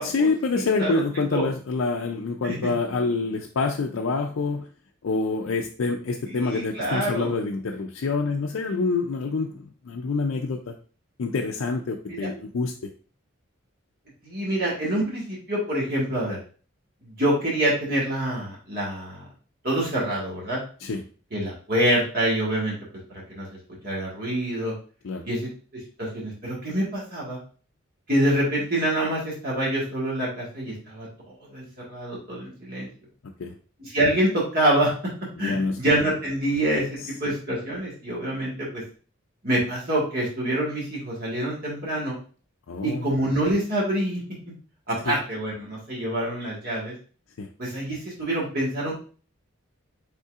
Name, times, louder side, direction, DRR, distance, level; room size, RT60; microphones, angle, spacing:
voice 1, 0.0-4.7 5.0-10.7 11.2-12.7 20.8-21.0 25.0-25.2 33.4-33.6 35.4-35.8 37.0-37.4 42.7-43.1 45.1-45.2 47.4-47.5, left 3 dB, 75° left, 2 dB, 0.4 m, -27 dB
voice 2, 6.3-7.3 12.1-12.3 14.2-16.4 17.0-19.2 19.6-20.6 21.3-22.7 23.3-23.5 23.8-24.7 25.2-27.4 28.1-31.1 31.5-32.9 33.8-34.9 35.4-36.9 37.2-38.7 39.4-42.1 42.8-44.2 44.9-46.9 47.6-48.9, right 1 dB, 45° right, -5 dB, 1.6 m, -26 dB
5.4 x 3.7 x 2.4 m, 0.39 s
head